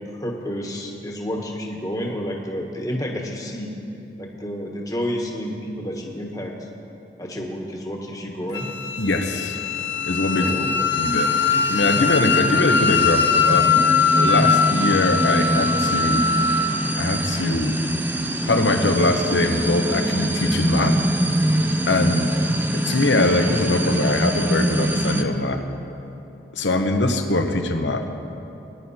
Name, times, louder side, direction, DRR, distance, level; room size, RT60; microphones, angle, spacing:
voice 1, 0.0-3.7 4.2-6.5 7.2-8.7 10.4-10.9, equal, 20° left, 0 dB, 1.3 m, -30 dB
Wind instrument woodwind instrument, 8.5-16.7, left 5 dB, 65° left, 0.7 m, -21 dB
voice 2, 9.0-9.6 10.0-11.3 11.7-13.8 14.1-16.3 17.0-17.8 18.5-21.0 21.9-22.3 22.7-25.6 26.6-28.0, left 2 dB, 85° left, 5 dB, 1.1 m, -22 dB
sound 1, 9.6-25.2, right 1 dB, 10° right, 0.6 m, -24 dB
19.5 x 10.5 x 4.3 m, 2.9 s
head